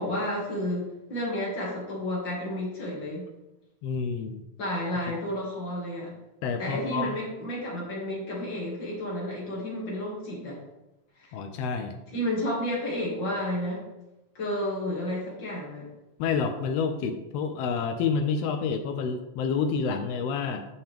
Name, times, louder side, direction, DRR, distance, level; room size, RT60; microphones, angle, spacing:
voice 1, 0.0-3.3 4.6-6.1 6.6-10.6 11.2-11.3 12.1-13.8 14.3-15.9, left 1 dB, 40° left, -4 dB, 2.5 m, -31 dB
voice 2, 3.8-4.4 6.4-7.2 11.3-11.9 16.2-20.7, left 5 dB, 85° left, 6 dB, 1.4 m, -28 dB
9.3 x 5.4 x 3.4 m, 0.94 s
omnidirectional pair, 3.4 m